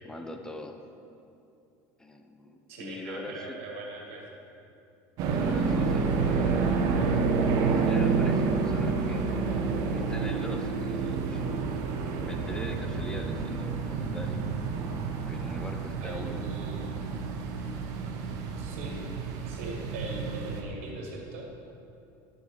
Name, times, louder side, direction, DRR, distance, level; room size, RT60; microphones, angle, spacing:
voice 1, 0.0-0.8 2.0-3.6 5.3-6.7 7.6-9.3 9.9-11.6 12.2-14.4 15.3-16.5, left 1 dB, 10° left, 5 dB, 0.6 m, -42 dB
voice 2, 2.7-4.3 16.0-17.1 18.6-19.0 19.4-21.5, right 2 dB, 90° right, -1 dB, 2.1 m, -40 dB
sound 1, 5.2-20.6, right 4 dB, 55° right, 1.1 m, -29 dB
11.0 x 6.5 x 4.9 m, 2.7 s
supercardioid pair, 125°, 7 cm